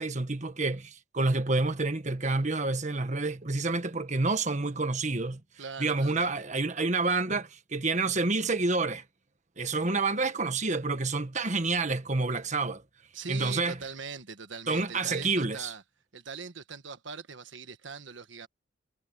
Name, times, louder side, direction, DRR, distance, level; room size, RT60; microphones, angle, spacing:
voice 1, 0.0-5.4 5.8-9.0 9.6-12.8 13.3-13.8 14.7-15.7, right 3 dB, 40° right, 1.5 m, -28 dB
voice 2, 5.6-6.3 13.1-15.8 16.1-18.5, right 5 dB, 85° right, 1.4 m, -41 dB
head